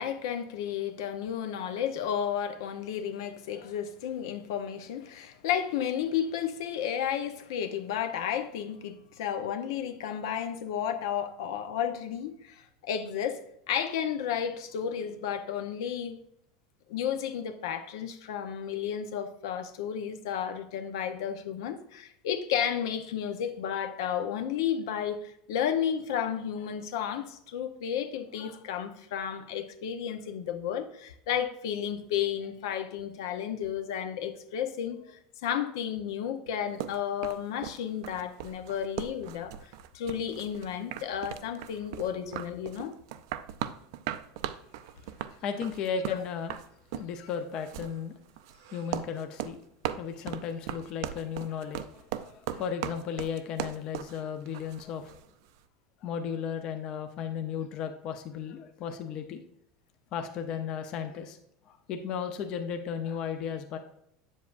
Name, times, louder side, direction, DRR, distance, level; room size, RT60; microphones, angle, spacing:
voice 1, 0.0-13.4 13.7-16.2 16.9-42.9 46.1-46.2, left 9 dB, 80° left, 0.8 m, -32 dB
sound 1, 36.8-55.2, right 11 dB, 70° right, 0.5 m, -38 dB
voice 2, 45.4-46.5 46.9-48.1 48.7-49.6 50.0-55.2 56.0-59.4 60.1-61.4 61.7-63.8, left 7 dB, 35° left, 0.6 m, -35 dB
8.1 x 7.4 x 2.5 m
supercardioid pair, 170°, 2 cm